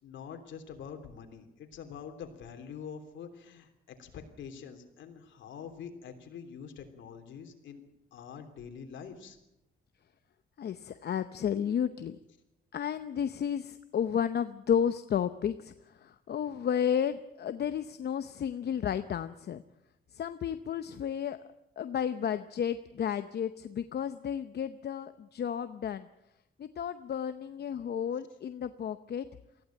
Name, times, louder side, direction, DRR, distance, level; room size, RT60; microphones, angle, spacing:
voice 1, 0.0-7.8 8.1-9.4, left 7 dB, 70° left, 6 dB, 3.2 m, -45 dB
voice 2, 10.6-12.2 12.7-19.6 20.1-21.4 21.8-26.1 26.6-29.3, left 8 dB, 55° left, 10 dB, 0.8 m, -32 dB
19.0 x 15.0 x 9.1 m, 0.90 s
cardioid pair, 90°, 20 cm